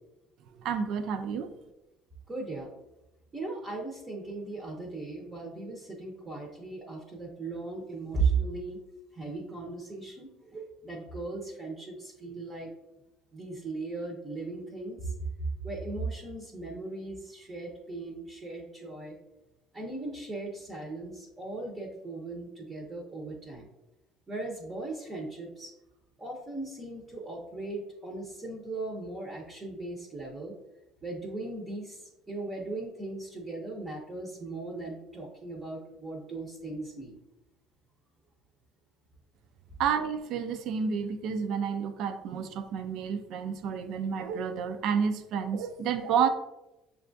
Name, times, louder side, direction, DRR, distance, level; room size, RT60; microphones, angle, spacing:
voice 1, 0.6-1.5 39.8-46.3, right 7 dB, 60° right, 9 dB, 0.4 m, -30 dB
voice 2, 2.3-2.7 3.3-8.8 9.1-12.7 13.3-15.1 15.6-19.2 19.7-23.7 24.3-25.7 26.2-30.5 31.0-37.2, right 3 dB, 20° right, -1 dB, 0.7 m, -37 dB
6.5 x 2.3 x 2.5 m, 0.95 s
cardioid pair, 130°, 0 cm